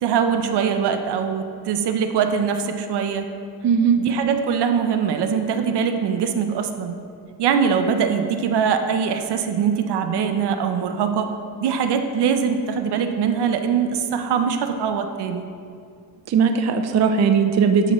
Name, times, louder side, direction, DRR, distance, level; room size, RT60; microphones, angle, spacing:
voice 1, 0.0-3.3 4.0-7.0 7.4-11.3 11.6-15.4, right 7 dB, 90° right, 6 dB, 0.7 m, -22 dB
voice 2, 3.6-4.0 16.3-17.9, right 6 dB, 45° right, 7 dB, 0.4 m, -18 dB
10.5 x 5.9 x 3.0 m, 2.3 s
wide cardioid pair, 175°, 39 cm